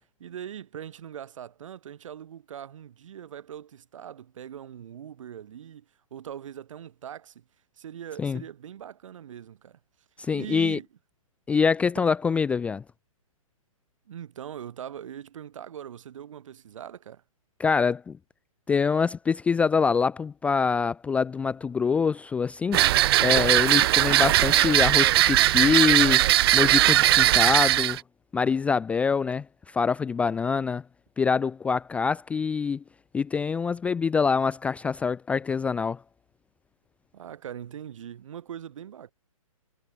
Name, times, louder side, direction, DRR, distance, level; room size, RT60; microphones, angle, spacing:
voice 1, 0.2-5.9 6.1-7.4 7.8-9.8 10.3-10.9 14.1-17.2 37.1-39.1, right 9 dB, 60° right, 3.9 m, -41 dB
voice 2, 10.2-10.8 11.5-12.8 17.6-18.2 18.7-22.8 23.2-26.2 26.5-28.0 28.3-29.5 29.7-30.8 31.2-32.8 33.1-36.0, left 5 dB, 5° left, 0.4 m, -25 dB
sound 1, 22.7-28.0, right 14 dB, 40° right, 0.6 m, -19 dB
hypercardioid pair, 135°, 18 cm